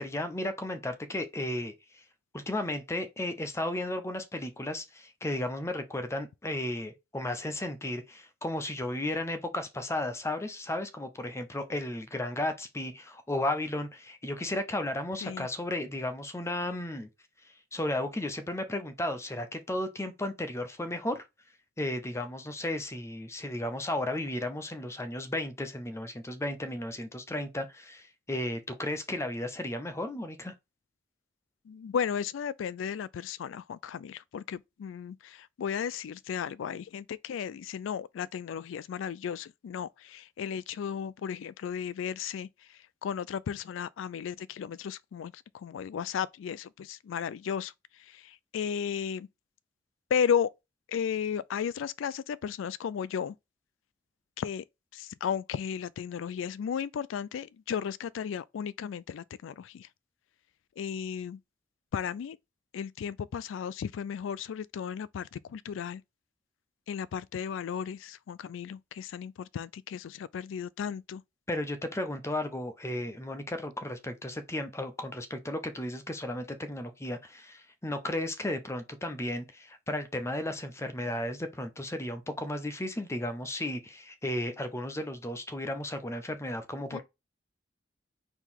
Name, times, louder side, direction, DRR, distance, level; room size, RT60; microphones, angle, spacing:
voice 1, 0.0-2.0 2.3-17.1 17.7-21.2 21.8-30.5 71.5-87.0, left 1 dB, 15° left, 0.7 m, -34 dB
voice 2, 31.7-42.5 43.0-47.7 48.0-49.3 50.1-50.5 50.9-53.4 54.4-54.6 54.9-59.9 60.8-61.4 61.9-62.4 62.7-66.0 66.9-71.2 86.9-87.0, left 7 dB, 90° left, 0.3 m, -34 dB
4.4 x 2.8 x 3.7 m
head